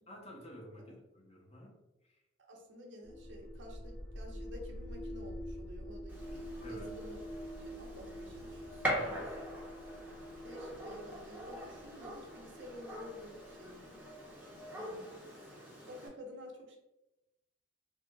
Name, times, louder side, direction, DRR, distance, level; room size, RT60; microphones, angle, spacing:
voice 1, 0.1-1.7 2.0-2.2 6.6-6.9 9.0-9.4, equal, 35° left, -1 dB, 0.7 m, -51 dB
voice 2, 2.5-6.4 6.7-7.2 7.6-8.8 10.4-13.9 14.7-15.2 15.9-16.8, left 1 dB, 65° right, 1 dB, 0.7 m, -51 dB
sound 1, 3.0-14.8, equal, 80° left, 0.8 m, -47 dB
Gunshot gunfire, 6.1-16.1, equal, 10° right, 0.7 m, -43 dB
3.4 x 2.1 x 3.2 m, 0.97 s
head